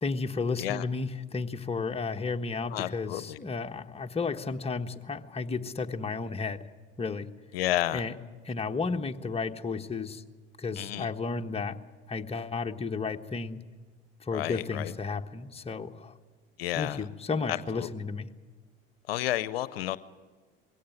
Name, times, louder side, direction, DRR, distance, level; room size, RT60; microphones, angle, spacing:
voice 1, 0.0-6.6 7.0-7.3 7.9-8.2 8.4-10.2 10.6-11.8 12.1-13.6 14.2-16.1 16.8-18.3, left 4 dB, 20° left, 1.3 m, -33 dB
voice 2, 2.7-3.4 7.5-8.0 10.8-11.1 14.3-14.9 16.6-17.0 17.5-17.9 19.1-20.0, left 14 dB, 85° left, 0.7 m, -31 dB
22.0 x 17.0 x 9.3 m
hypercardioid pair, 75°, 29 cm